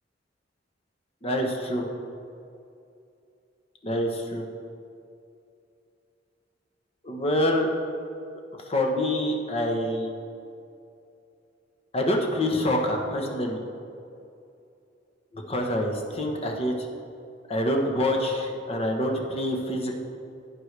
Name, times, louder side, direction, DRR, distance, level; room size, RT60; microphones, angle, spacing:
voice 1, 1.2-1.9 3.8-4.5 7.0-7.7 8.7-10.1 11.9-13.6 15.3-16.9 17.5-19.9, left 1 dB, 35° left, 2 dB, 1.1 m, -26 dB
11.5 x 9.6 x 3.4 m, 2.6 s
head